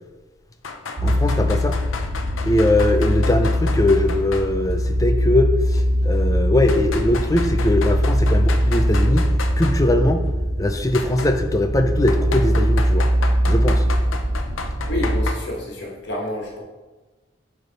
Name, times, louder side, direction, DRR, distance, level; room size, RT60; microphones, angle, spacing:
sound 1, 0.6-4.5 4.8-4.9 5.7-5.8 6.7-9.8 10.9-11.3 12.1-15.3, left 4 dB, 85° left, 0.6 m, -33 dB
voice 1, 1.0-1.8 2.4-10.3 10.6-13.1 13.5-13.8, left 1 dB, 15° left, 6 dB, 0.4 m, -21 dB
sound 2, 1.0-15.2, equal, 55° right, 0.7 m, -21 dB
voice 2, 14.9-16.6, left 1 dB, 60° left, -2 dB, 1.5 m, -28 dB
8.1 x 3.4 x 4.1 m, 1.2 s
head